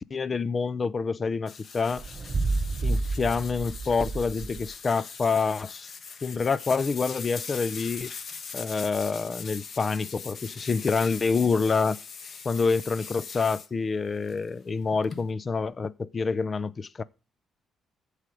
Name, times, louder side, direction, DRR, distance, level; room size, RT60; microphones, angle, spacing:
voice 1, 0.0-2.0 2.8-5.9 6.2-8.1 8.5-12.0 12.4-17.0, left 4 dB, 35° left, 0.5 m, -27 dB
sound 1, 1.5-13.7 14.2-15.3, left 5 dB, 50° left, 1.3 m, -41 dB
sound 2, 2.0-4.8, right 3 dB, 35° right, 0.9 m, -30 dB
14.0 x 5.0 x 6.7 m
cardioid pair, 90°, 0 cm